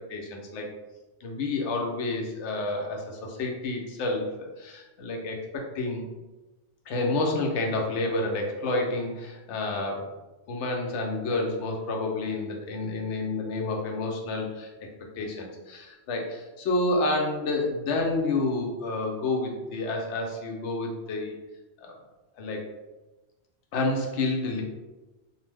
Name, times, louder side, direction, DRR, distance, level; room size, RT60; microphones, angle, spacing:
voice 1, 0.1-0.7 1.2-6.1 6.9-10.0 10.5-14.7 15.2-21.4 21.8-21.9 22.4-22.7 23.7-24.6, left 2 dB, 85° left, 1 dB, 0.9 m, -29 dB
2.5 x 2.0 x 3.2 m, 1.1 s
omnidirectional pair, 1.1 m